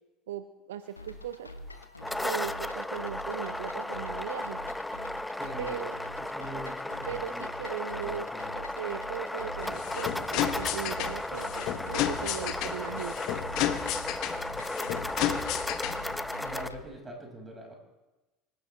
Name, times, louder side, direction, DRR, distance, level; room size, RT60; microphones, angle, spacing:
voice 1, 0.3-1.5 2.2-4.6 5.6-5.9 7.1-8.3 8.5-13.3, right 10 dB, 70° right, 12 dB, 0.5 m, -38 dB
sound 1, 1.0-16.8, left 1 dB, 85° left, 1.1 m, -46 dB
sound 2, 1.8-16.7, left 1 dB, 5° left, 0.6 m, -35 dB
voice 2, 5.3-5.9 6.2-7.5 8.0-8.5 16.4-17.7, right 1 dB, 15° right, 1 dB, 5.6 m, -44 dB
sound 3, 9.6-16.2, left 11 dB, 50° left, 1.2 m, -32 dB
24.5 x 15.5 x 3.3 m, 1.1 s
figure-of-eight pair, 70°, 0 cm